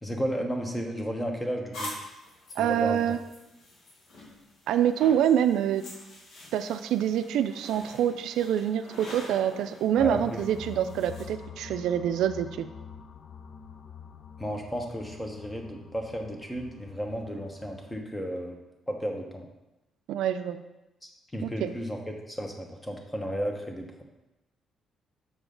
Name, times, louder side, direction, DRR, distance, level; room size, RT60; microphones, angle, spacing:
voice 1, 0.0-1.9 2.6-3.0 10.0-10.5 14.4-18.6 18.9-19.5 21.0-22.0 22.3-24.0, equal, 10° left, 2 dB, 1.1 m, -33 dB
sound 1, 1.7-11.2, left 1 dB, 75° left, 1.6 m, -45 dB
voice 2, 2.6-3.2 4.7-5.8 6.5-12.7 20.1-20.6 21.4-21.7, right 10 dB, 85° right, 10 dB, 0.4 m, -26 dB
sound 2, 10.0-18.0, left 6 dB, 55° left, 0.4 m, -46 dB
6.7 x 4.9 x 3.8 m, 0.98 s
cardioid pair, 90°, 0 cm